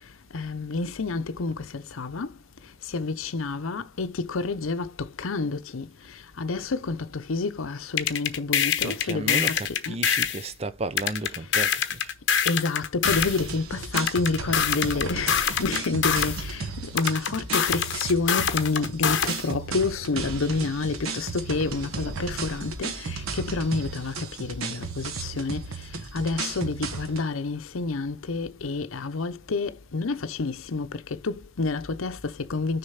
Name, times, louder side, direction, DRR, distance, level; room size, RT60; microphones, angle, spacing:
voice 1, 0.3-2.3 2.9-5.9 6.4-9.6 9.9-10.0 12.5-25.6 26.1-32.8, left 3 dB, 80° left, 0.7 m, -29 dB
sound 1, 8.0-10.4 11.0-13.4 14.0-16.4 17.0-19.4, left 8 dB, 55° left, 0.9 m, -25 dB
voice 2, 8.8-12.1, right 2 dB, 30° right, 0.5 m, -33 dB
sound 2, 13.0-27.3, right 4 dB, 90° right, 1.1 m, -34 dB
6.7 x 4.0 x 5.7 m
head